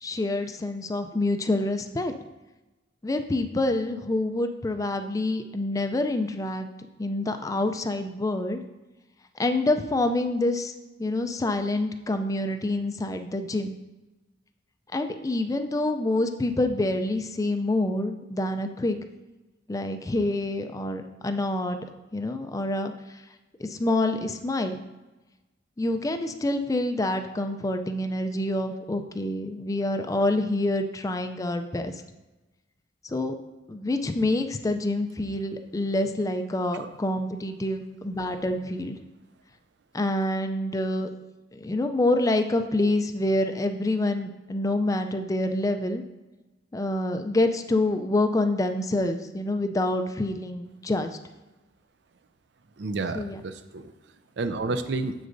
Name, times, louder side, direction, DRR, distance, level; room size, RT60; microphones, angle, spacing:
voice 1, 0.0-2.1 3.0-6.7 7.0-8.6 9.4-10.7 11.0-13.8 14.9-19.0 19.7-21.9 22.1-22.9 23.6-24.8 25.8-31.9 33.0-33.3 33.7-39.0 39.9-41.1 41.5-46.0 46.7-51.1 53.1-53.4, left 2 dB, 15° left, 7 dB, 0.3 m, -27 dB
voice 2, 52.8-53.9 54.4-55.1, right 3 dB, 60° right, 10 dB, 0.5 m, -30 dB
7.9 x 6.3 x 2.6 m, 1.1 s
head